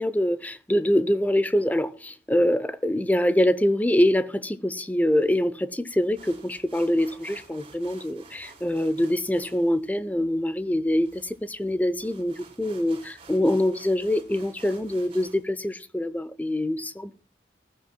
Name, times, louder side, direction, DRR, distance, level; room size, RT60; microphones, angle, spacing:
voice 1, 0.0-17.2, left 1 dB, 10° left, 0.6 m, -24 dB
sound 1, 5.9-15.4, right 4 dB, 30° right, 3.7 m, -51 dB
19.5 x 14.0 x 2.2 m
head